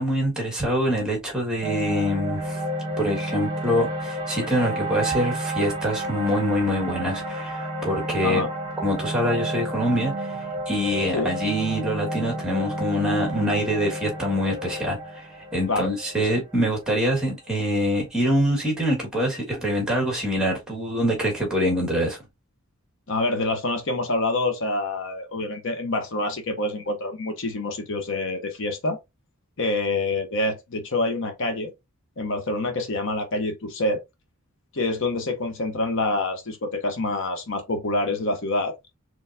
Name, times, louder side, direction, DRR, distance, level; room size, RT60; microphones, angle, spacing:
voice 1, 0.0-2.6 3.0-8.4 8.8-22.2, equal, 5° right, 1.6 m, -25 dB
sound 1, 1.6-17.9, right 1 dB, 25° right, 1.2 m, -31 dB
voice 2, 15.7-16.3 23.1-29.0 29.6-31.7 32.2-34.0 34.7-38.7, left 2 dB, 60° left, 0.8 m, -26 dB
4.2 x 3.1 x 2.6 m
head